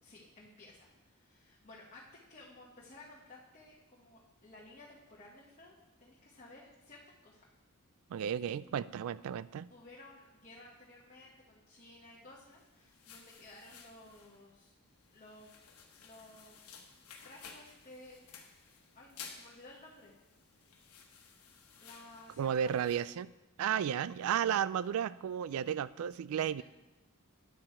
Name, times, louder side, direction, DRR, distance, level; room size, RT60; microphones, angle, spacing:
voice 1, 0.0-7.4 9.7-14.7 15.1-15.5 16.0-16.6 17.2-18.3 18.9-20.1 21.3-23.0, left 2 dB, 35° left, -4 dB, 1.1 m, -55 dB
voice 2, 8.1-9.7 22.4-23.3 23.6-26.6, right 9 dB, 70° right, 18 dB, 0.3 m, -33 dB
sound 1, 12.3-23.1, left 6 dB, 85° left, 1.2 m, -55 dB
9.7 x 6.8 x 4.3 m, 1.0 s
head